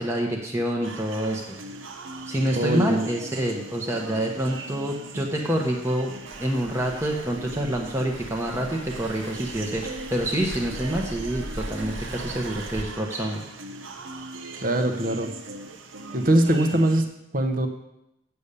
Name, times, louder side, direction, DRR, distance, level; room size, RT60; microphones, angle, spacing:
voice 1, 0.0-1.4 2.3-6.1 6.4-13.4, right 1 dB, 15° right, -1 dB, 1.0 m, -27 dB
sound 1, 0.8-17.0, right 3 dB, 90° right, 1.0 m, -40 dB
voice 2, 2.5-3.0 14.6-15.4 16.1-17.7, right 1 dB, 45° right, 6 dB, 1.0 m, -22 dB
Waves surf, 6.3-12.8, right 1 dB, 70° right, 1.4 m, -39 dB
8.5 x 7.1 x 6.8 m, 0.85 s
head